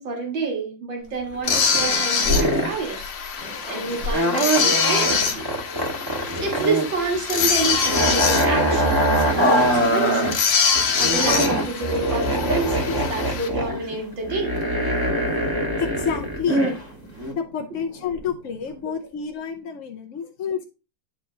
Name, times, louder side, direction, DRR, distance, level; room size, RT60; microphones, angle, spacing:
voice 1, 0.0-5.5 5.9-6.1 6.4-10.5 11.0-14.5, right 3 dB, 80° right, 2 dB, 2.5 m, -29 dB
Growling, 1.0-5.6 6.3-6.4 6.7-7.8 8.9-11.7 12.0-12.6 13.4-15.3 16.4-18.9, left 1 dB, 50° right, 3.2 m, -37 dB
sound 1, 1.3-1.9 2.2-2.8 4.1-6.9 7.1-10.3 10.7-16.8 17.2-17.3, right 1 dB, 10° right, 1.5 m, -23 dB
sound 2, 1.4-13.5, left 6 dB, 75° left, 1.8 m, -25 dB
voice 2, 15.8-16.7 17.3-20.6, left 7 dB, 60° left, 2 dB, 0.8 m, -29 dB
10.5 x 3.6 x 3.9 m, 0.30 s
omnidirectional pair, 2.0 m